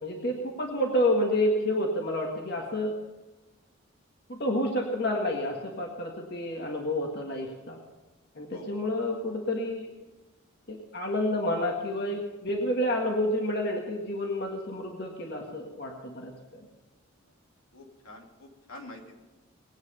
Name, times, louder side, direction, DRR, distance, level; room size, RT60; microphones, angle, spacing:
voice 1, 0.0-2.9 4.3-7.8 8.4-9.9 10.7-16.3, left 1 dB, 50° left, 1 dB, 1.8 m, -29 dB
voice 2, 17.7-19.2, left 2 dB, 85° left, 0 dB, 3.0 m, -47 dB
20.5 x 9.4 x 5.6 m, 1.2 s
head